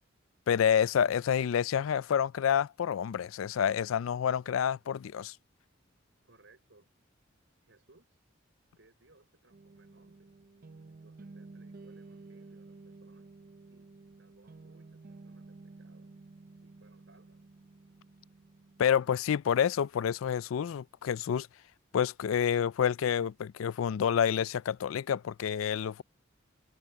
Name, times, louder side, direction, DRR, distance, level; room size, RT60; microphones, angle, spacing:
voice 1, 0.5-5.4 18.8-21.5 21.9-26.0, left 8 dB, 85° left, 0.4 m, -28 dB
voice 2, 6.2-6.9 7.6-8.1 8.8-10.3 10.9-13.3 13.6-13.9 14.2-16.1 16.6-17.4, right 2 dB, 65° right, 5.9 m, -64 dB
sound 1, 9.5-19.1, right 3 dB, 45° right, 0.6 m, -52 dB
head